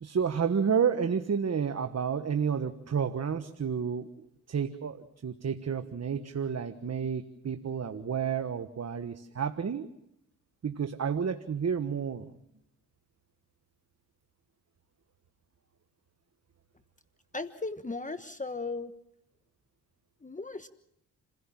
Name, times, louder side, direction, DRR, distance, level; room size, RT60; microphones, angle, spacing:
voice 1, 0.0-4.1 4.5-9.9 10.6-12.3, right 7 dB, 45° right, 9 dB, 1.4 m, -30 dB
voice 2, 17.3-18.9 20.2-20.7, left 3 dB, 20° left, 10 dB, 1.3 m, -36 dB
29.0 x 16.0 x 7.5 m, 0.80 s
supercardioid pair, 55°, 36 cm